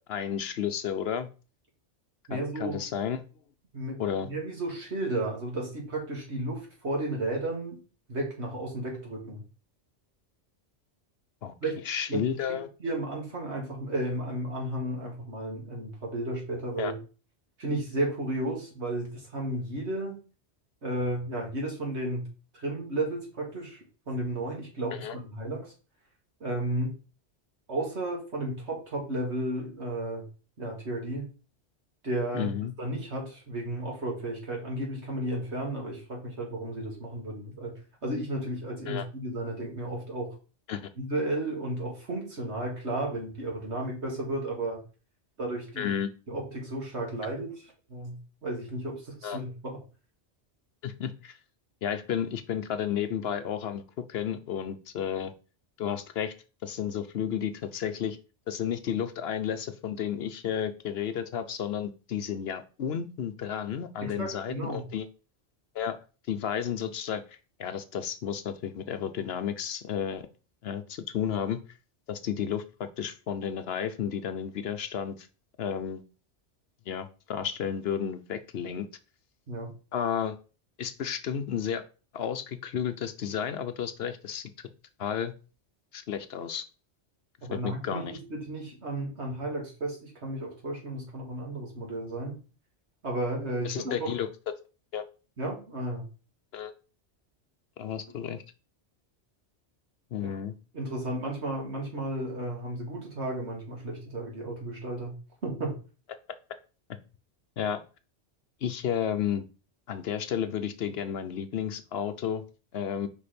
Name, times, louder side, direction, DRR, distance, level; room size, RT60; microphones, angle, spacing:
voice 1, 0.1-1.3 2.3-3.2 4.0-4.3 11.4-11.5 11.9-12.7 16.8-16.9 24.9-25.2 32.3-32.7 38.9-39.0 40.7-40.9 45.8-46.1 49.2-49.4 50.8-51.4 51.8-55.3 55.8-56.3 56.6-58.2 58.5-65.1 65.7-66.0 66.3-70.3 70.6-71.6 72.1-75.3 75.6-76.0 76.9-78.9 79.9-80.4 80.8-81.8 82.1-84.5 85.0-85.3 85.9-86.6 87.5-88.1 93.6-94.3 94.9-95.0 96.5-96.7 97.8-98.4 100.1-100.5 107.6-107.8 108.6-109.4 109.9-112.4 112.7-113.1, left 8 dB, 65° left, 10 dB, 0.8 m, -32 dB
voice 2, 2.3-2.8 3.7-7.8 8.1-9.4 11.6-11.8 12.1-12.2 12.5-17.0 17.6-20.2 20.8-22.2 22.5-25.7 26.4-26.9 27.7-30.2 30.6-31.3 32.0-32.5 32.8-37.7 38.0-40.3 41.0-44.8 45.4-46.0 46.3-48.2 48.4-49.8 64.0-64.8 79.5-79.7 87.4-92.3 93.0-94.1 95.4-96.0 100.2-100.4 100.7-105.1 105.4-105.8, right 1 dB, 70° right, -1 dB, 2.5 m, -33 dB
5.2 x 4.3 x 5.1 m, 0.34 s
omnidirectional pair, 1.2 m